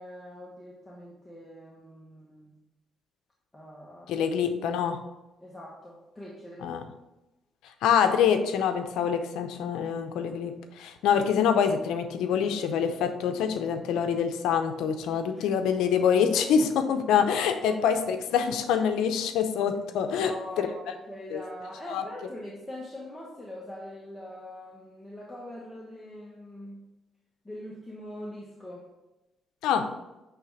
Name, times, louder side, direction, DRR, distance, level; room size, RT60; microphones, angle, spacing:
voice 1, 0.0-2.5 3.5-4.2 5.4-6.7 15.3-15.5 20.2-26.8 27.4-28.8, left 1 dB, 15° left, -4 dB, 1.4 m, -42 dB
voice 2, 4.1-5.0 6.6-6.9 7.8-20.3 20.6-20.7 21.3-21.4 21.9-22.0 29.6-29.9, left 7 dB, 90° left, 8 dB, 0.6 m, -25 dB
8.9 x 3.5 x 4.9 m, 1.0 s
cardioid pair, 90°, 0 cm